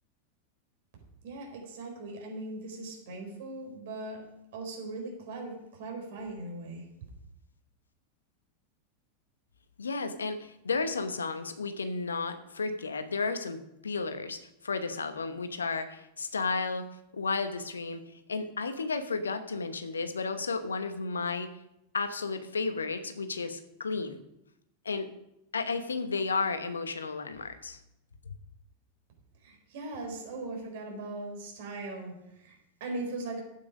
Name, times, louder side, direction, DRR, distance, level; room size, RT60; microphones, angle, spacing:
voice 1, 1.2-4.2 4.5-6.9 29.4-33.4, right 2 dB, 55° right, 1 dB, 4.3 m, -39 dB
voice 2, 9.8-16.9 17.1-18.0 18.3-21.5 21.9-24.2 24.8-25.1 25.5-27.8, left 4 dB, 75° left, 9 dB, 1.1 m, -33 dB
12.0 x 8.7 x 5.2 m, 0.84 s
figure-of-eight pair, 90°, 0 cm